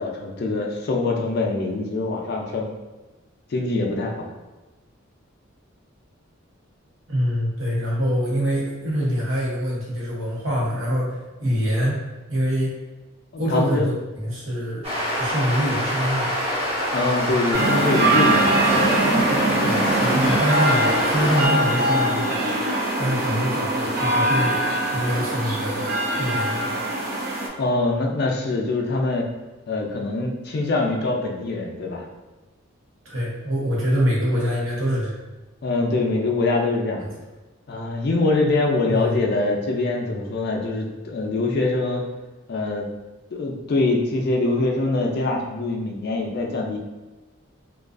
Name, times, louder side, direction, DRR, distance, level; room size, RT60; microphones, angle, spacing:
voice 1, 0.0-2.7 3.5-4.3 13.3-13.9 16.9-18.9 23.3-23.5 27.6-29.3 29.7-32.1 35.6-37.0 37.7-42.0 42.5-42.9 43.3-46.8, left 2 dB, 50° left, 1 dB, 0.4 m, -24 dB
voice 2, 7.1-12.0 12.3-12.8 13.4-14.9 15.1-16.5 19.6-22.5 23.0-24.6 24.9-26.7 33.0-35.1 37.0-37.1 38.8-39.2, equal, 65° right, -5 dB, 0.9 m, -25 dB
sound 1, 14.8-21.5, equal, 30° right, 0.8 m, -25 dB
sound 2, 17.5-27.5, right 1 dB, 50° right, 0.4 m, -22 dB
2.4 x 2.2 x 2.4 m, 1.2 s
head